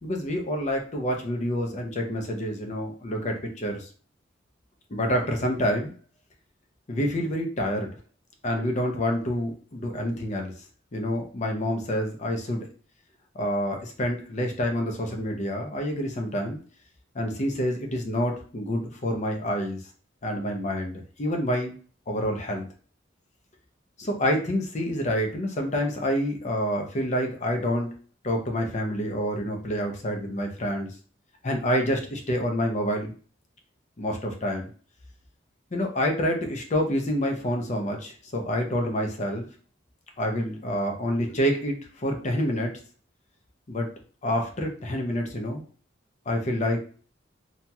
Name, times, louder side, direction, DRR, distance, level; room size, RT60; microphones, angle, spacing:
voice 1, 0.0-3.9 4.9-5.9 6.9-7.9 8.4-10.5 10.9-12.6 13.3-16.6 17.1-19.8 20.2-21.7 22.1-22.7 24.0-27.9 28.2-30.9 31.4-33.1 34.0-34.7 35.7-39.4 40.2-42.7 43.7-43.9 44.2-45.6 46.3-46.8, equal, 40° left, 2 dB, 0.6 m, -27 dB
2.8 x 2.7 x 2.3 m, 0.41 s
head